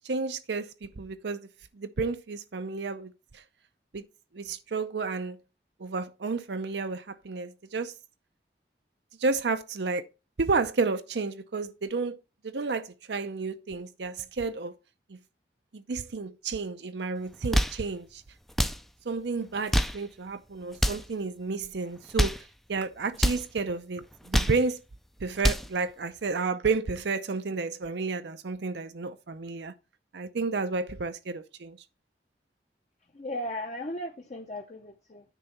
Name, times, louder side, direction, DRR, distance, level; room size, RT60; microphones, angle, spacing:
voice 1, 0.0-1.5 1.7-3.4 3.9-4.1 4.3-5.4 5.8-7.9 9.2-10.1 10.4-12.2 12.4-14.7 15.1-15.2 15.7-18.2 19.1-24.8 25.2-29.7 30.1-31.8, right 4 dB, 75° right, 0.6 m, -31 dB
sound 1, 17.3-17.8 18.5-18.8 19.5-20.0 20.7-21.1 22.0-22.5 23.1-23.5 24.1-24.6 25.2-25.7, equal, ahead, 0.4 m, -26 dB
voice 2, 33.1-35.2, left 1 dB, 40° left, 0.7 m, -36 dB
9.9 x 4.0 x 5.7 m
head